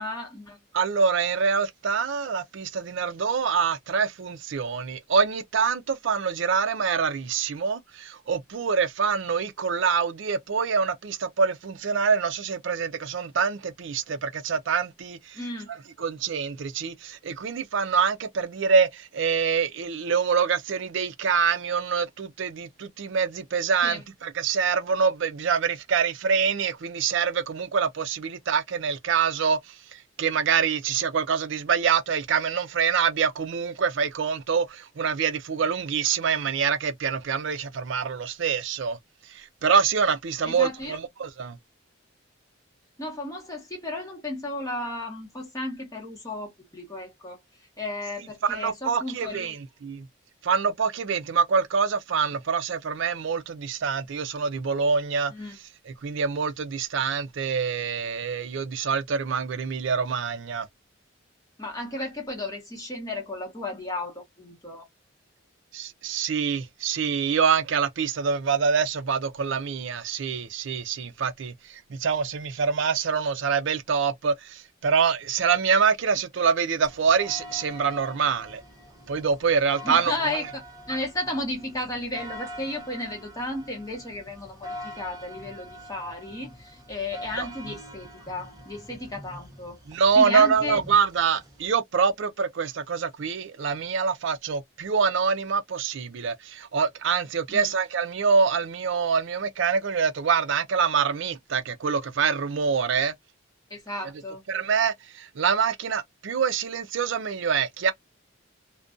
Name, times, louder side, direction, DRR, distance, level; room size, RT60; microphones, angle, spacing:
voice 1, 0.0-0.6 15.3-15.7 23.8-24.0 40.4-41.0 43.0-47.4 47.8-49.5 55.3-55.6 61.6-64.9 79.8-89.8 90.2-90.8 97.5-97.7 103.7-104.4, left 1 dB, 15° left, 1.0 m, -34 dB
voice 2, 0.7-15.4 16.0-39.0 39.3-41.6 48.4-50.1 50.4-55.3 55.9-60.7 65.7-78.6 79.1-80.4 87.4-87.5 89.9-103.1 104.5-107.9, right 6 dB, 60° right, 0.4 m, -25 dB
sound 1, 76.8-91.7, equal, 15° right, 0.7 m, -44 dB
2.4 x 2.2 x 2.4 m
head